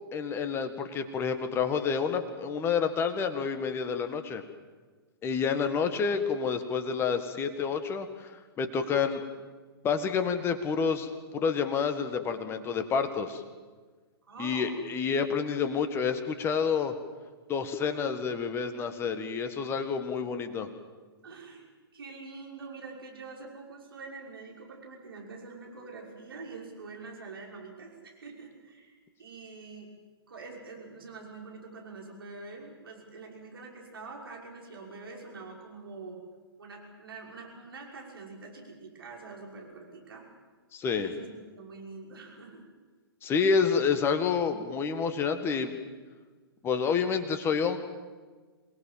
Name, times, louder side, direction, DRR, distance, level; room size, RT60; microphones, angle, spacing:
voice 1, 0.1-4.4 5.2-8.3 8.6-9.2 9.8-13.4 14.4-16.9 17.5-20.7 40.7-41.1 43.2-45.7 46.6-47.8, left 6 dB, 20° left, 8 dB, 1.7 m, -29 dB
voice 2, 14.3-14.8 21.2-21.6 21.9-29.9 30.3-36.2 36.6-40.3 41.0-42.7, right 4 dB, 65° right, -1 dB, 6.0 m, -45 dB
27.0 x 19.5 x 7.5 m, 1.4 s
figure-of-eight pair, 115°, 13 cm